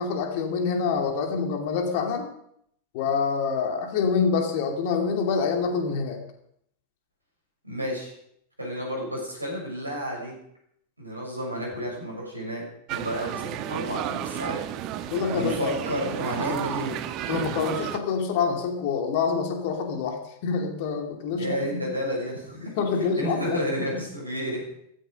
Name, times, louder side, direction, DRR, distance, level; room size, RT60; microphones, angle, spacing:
voice 1, 0.0-2.3 2.9-6.2 15.1-15.8 16.5-16.6 17.3-21.8 22.8-23.6 23.9-24.0, left 5 dB, 50° left, 3 dB, 2.8 m, -26 dB
voice 2, 7.6-8.1 8.6-10.3 11.0-12.6 12.9-14.6 14.9-17.0 21.4-24.6, equal, 85° right, -1 dB, 6.6 m, -31 dB
sound 1, 12.9-18.0, right 11 dB, 40° right, 1.1 m, -32 dB
15.5 x 14.5 x 5.3 m, 0.71 s
figure-of-eight pair, 90°, 0 cm